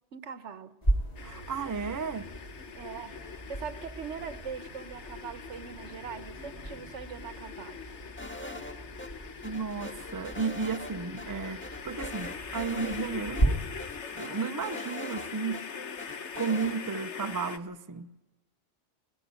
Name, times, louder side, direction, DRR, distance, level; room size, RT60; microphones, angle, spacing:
voice 1, 0.1-0.8 2.7-7.8, right 7 dB, 75° right, 1.3 m, -41 dB
sound 1, 0.8-13.5, right 2 dB, 35° left, 2.8 m, -36 dB
sound 2, 1.2-17.6, left 6 dB, 70° left, 1.5 m, -43 dB
voice 2, 1.2-2.3 9.4-13.6 14.1-15.7 16.4-18.1, right 5 dB, 20° right, 0.7 m, -33 dB
sound 3, 8.2-9.1 9.4-10.9 11.2-11.3 11.6-13.1 13.3-13.4 13.8-15.6 16.0-16.7, left 1 dB, 10° left, 2.0 m, -42 dB
22.0 x 18.0 x 9.5 m
omnidirectional pair, 1.2 m